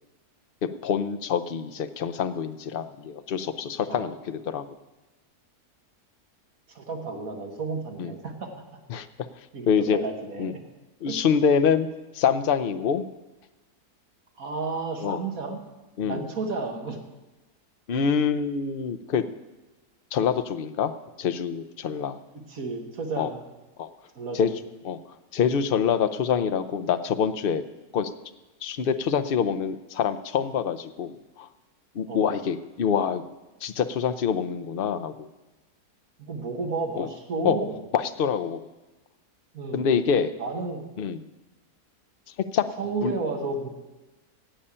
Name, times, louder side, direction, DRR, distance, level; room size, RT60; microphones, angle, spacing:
voice 1, 0.8-4.6 8.0-8.1 8.9-9.1 9.7-10.0 10.4-10.5 11.0-11.9 12.1-13.1 15.0-15.2 16.0-16.3 17.9-19.2 20.1-20.9 21.2-22.2 23.2-23.3 23.8-23.9 24.3-24.5 24.8-25.0 25.3-27.6 27.9-28.1 28.6-31.5 31.9-33.2 33.6-35.3 37.0-37.1 37.4-37.6 37.9-38.6 39.7-40.3 41.0-41.2 42.5-42.7 43.0-43.1, left 7 dB, 70° left, 11 dB, 0.5 m, -25 dB
voice 2, 6.7-8.5 9.5-10.6 11.1-11.2 14.4-15.6 16.0-17.0 22.3-23.4 24.2-24.5 32.1-32.4 36.2-37.8 39.5-39.8 40.4-40.8 42.8-43.7, right 3 dB, 60° right, 3 dB, 1.9 m, -32 dB
16.5 x 5.6 x 8.7 m, 1.1 s
omnidirectional pair, 1.8 m